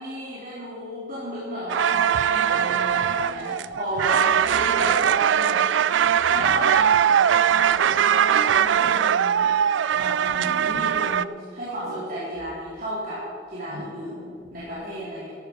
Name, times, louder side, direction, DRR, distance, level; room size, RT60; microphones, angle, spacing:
voice 1, 0.0-5.6 6.3-7.0 7.3-9.6 10.0-13.2 13.5-15.3, equal, 50° right, -10 dB, 4.0 m, -33 dB
sound 1, 1.7-11.2, right 9 dB, 85° right, 0.4 m, -21 dB
sound 2, 2.4-3.0 4.1-4.7 6.1-6.7 8.1-8.8 10.1-10.9 11.6-12.5 13.4-14.7, right 1 dB, 70° right, 2.9 m, -42 dB
14.0 x 13.0 x 5.4 m, 2.2 s
head